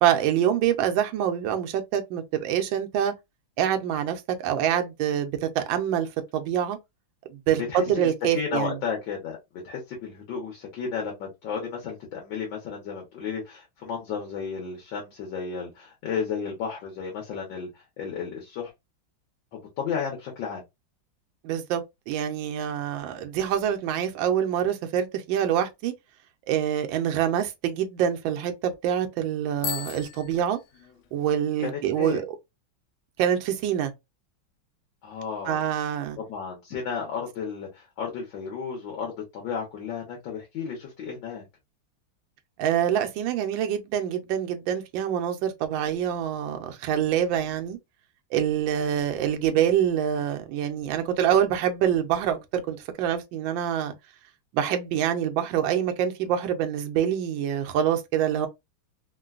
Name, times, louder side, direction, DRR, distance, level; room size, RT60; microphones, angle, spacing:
voice 1, 0.0-3.1 3.6-6.8 7.3-8.8 21.4-25.9 26.5-30.6 31.1-32.3 33.2-33.9 35.4-36.2 42.6-47.8 48.3-53.9 54.5-58.5, right 9 dB, 75° right, 1.3 m, -25 dB
voice 2, 8.3-9.4 9.6-18.7 19.5-20.6 31.6-32.2 35.0-35.6 36.2-41.4, left 6 dB, 70° left, 1.6 m, -33 dB
Bicycle bell, 29.6-31.3, left 8 dB, 85° left, 1.5 m, -37 dB
3.8 x 2.2 x 2.4 m
omnidirectional pair, 2.2 m